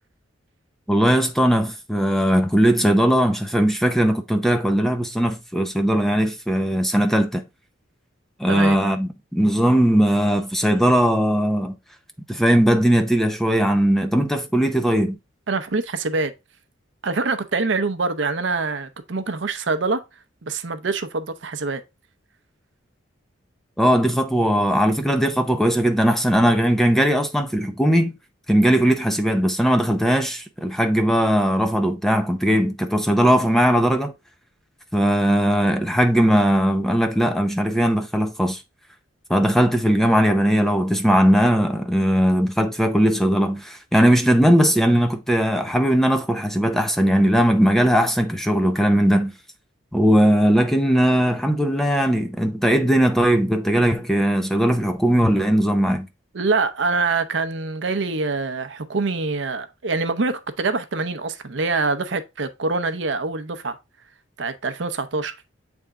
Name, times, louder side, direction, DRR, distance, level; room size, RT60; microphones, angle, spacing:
voice 1, 0.9-7.4 8.4-11.8 12.3-15.2 23.8-28.1 28.5-34.1 34.9-38.6 39.3-49.3 49.9-56.1, equal, ahead, 0.6 m, -19 dB
voice 2, 15.5-16.3 17.0-20.0 20.4-21.8 56.3-63.8 64.4-65.4, right 3 dB, 65° right, 0.7 m, -25 dB
7.9 x 3.5 x 3.6 m
head